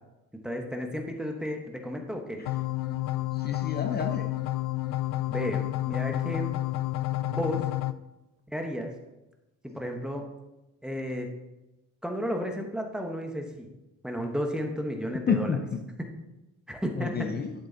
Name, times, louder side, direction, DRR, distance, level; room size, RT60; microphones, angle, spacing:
voice 1, 0.4-2.4 5.3-6.5 7.2-7.7 8.5-8.9 9.7-10.2 10.8-11.3 12.0-13.7 14.0-15.6 16.7-17.1, equal, 5° right, 2 dB, 1.0 m, -33 dB
sound 1, 2.5-7.9, left 17 dB, 80° left, 0.5 m, -30 dB
voice 2, 3.3-4.3 15.3-15.8 17.0-17.5, left 5 dB, 30° left, 5 dB, 0.6 m, -29 dB
11.5 x 6.7 x 3.9 m, 0.99 s
cardioid pair, 155°, 31 cm